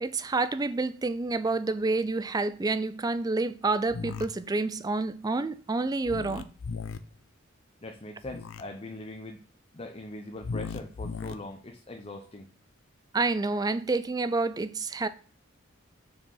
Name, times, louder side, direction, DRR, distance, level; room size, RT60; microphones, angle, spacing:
voice 1, 0.0-6.5 13.1-15.1, right 3 dB, 20° right, 0.4 m, -28 dB
sound 1, 3.9-4.3 6.0-7.0 8.2-8.6 10.4-11.3, left 4 dB, 75° left, 0.6 m, -36 dB
voice 2, 7.8-9.4 9.7-12.5, left 1 dB, 30° left, 0.7 m, -41 dB
6.2 x 4.8 x 3.9 m
head